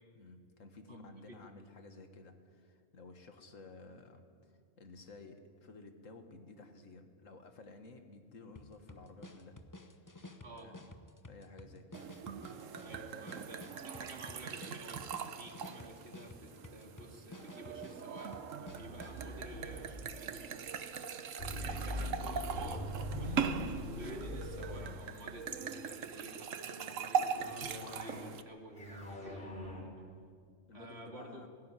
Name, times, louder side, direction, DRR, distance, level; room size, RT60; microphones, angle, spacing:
voice 1, 0.2-9.6 10.5-10.9 11.3-12.1 23.2-23.5 29.8-30.1 30.7-31.5, left 3 dB, 90° left, 6 dB, 2.1 m, -54 dB
voice 2, 0.9-1.4 10.4-10.8 12.8-21.2 21.6-29.6 30.7-31.5, right 1 dB, 55° right, 2 dB, 2.6 m, -52 dB
sound 1, 8.6-19.3, left 1 dB, 15° left, 0.9 m, -53 dB
sound 2, 11.9-28.4, right 6 dB, 80° right, 1.3 m, -41 dB
sound 3, 18.7-20.1 21.4-25.6 27.4-28.3 28.7-29.8, left 1 dB, 45° left, 4.9 m, -42 dB
18.5 x 16.5 x 9.9 m, 2.1 s
omnidirectional pair, 1.3 m